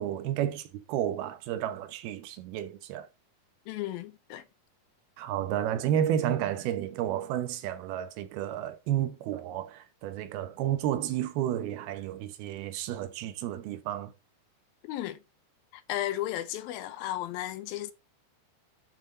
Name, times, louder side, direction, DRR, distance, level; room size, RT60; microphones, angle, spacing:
voice 1, 0.0-3.1 5.2-14.1, right 11 dB, 80° right, 2.8 m, -31 dB
voice 2, 3.7-4.4 14.8-15.2 15.7-17.9, left 13 dB, 80° left, 2.3 m, -34 dB
10.5 x 5.7 x 4.0 m
omnidirectional pair, 4.5 m